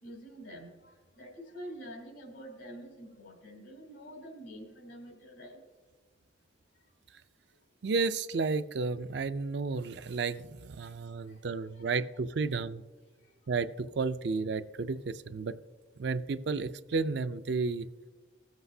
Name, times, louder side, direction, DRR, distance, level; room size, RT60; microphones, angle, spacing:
voice 1, 0.0-5.6 10.8-10.9 11.2-11.9 12.5-12.6 13.2-13.3, equal, 90° left, 1 dB, 2.9 m, -47 dB
voice 2, 7.8-12.8 13.5-15.5 16.0-17.9, right 4 dB, 60° right, 12 dB, 0.4 m, -32 dB
19.5 x 7.9 x 2.7 m, 1.3 s
head